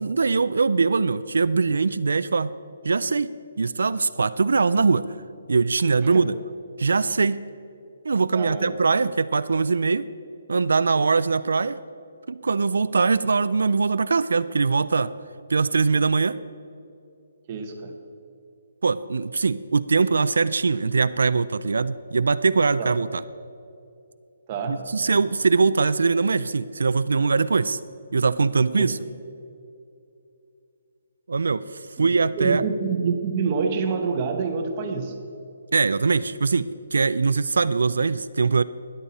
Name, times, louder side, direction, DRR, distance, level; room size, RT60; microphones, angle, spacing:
voice 1, 0.0-2.5 2.8-5.0 5.5-6.4 6.8-7.4 8.1-10.1 10.5-11.8 12.3-15.1 15.5-16.4 18.8-23.2 24.7-27.8 28.1-29.0 31.3-32.6 35.7-38.6, right 4 dB, 90° right, 14 dB, 0.4 m, -22 dB
voice 2, 8.3-8.7 17.5-17.9 22.8-22.9 24.5-24.9 28.8-28.9 32.0-32.1 32.3-35.1, right 5 dB, 20° right, 2 dB, 0.9 m, -26 dB
12.5 x 10.0 x 4.1 m, 2.7 s
hypercardioid pair, 180°, 0 cm